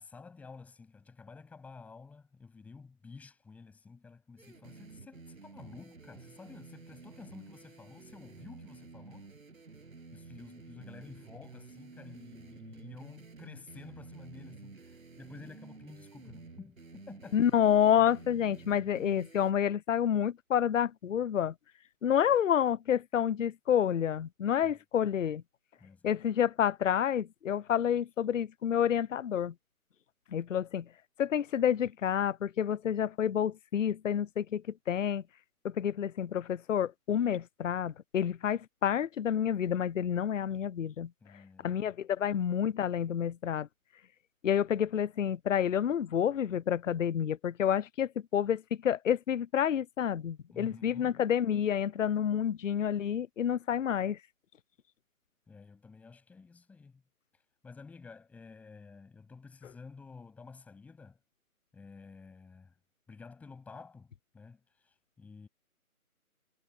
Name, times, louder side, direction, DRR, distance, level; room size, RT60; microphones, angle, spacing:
voice 1, 0.0-9.3 10.1-17.4 25.8-26.1 41.2-41.9 50.5-51.2 55.5-57.0 57.6-61.2 61.7-62.7 63.1-65.5, left 4 dB, 5° left, 7.5 m, -51 dB
sound 1, 4.4-19.5, right 4 dB, 65° right, 7.0 m, -51 dB
voice 2, 17.3-21.5 22.0-25.4 26.0-29.5 30.3-30.9 31.2-35.2 35.6-41.1 41.6-43.7 44.4-54.2, left 9 dB, 60° left, 0.5 m, -29 dB
figure-of-eight pair, 160°, 44 cm